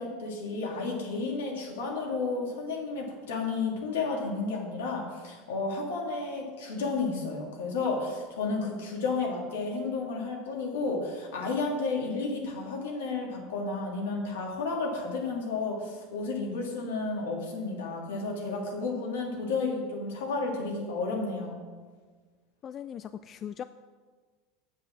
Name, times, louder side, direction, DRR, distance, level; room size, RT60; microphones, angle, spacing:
voice 1, 0.0-21.6, left 3 dB, 80° left, -1 dB, 2.5 m, -32 dB
voice 2, 22.6-23.6, left 9 dB, 35° left, 12 dB, 0.3 m, -39 dB
8.3 x 7.1 x 6.3 m, 1.5 s
hypercardioid pair, 95°, 0 cm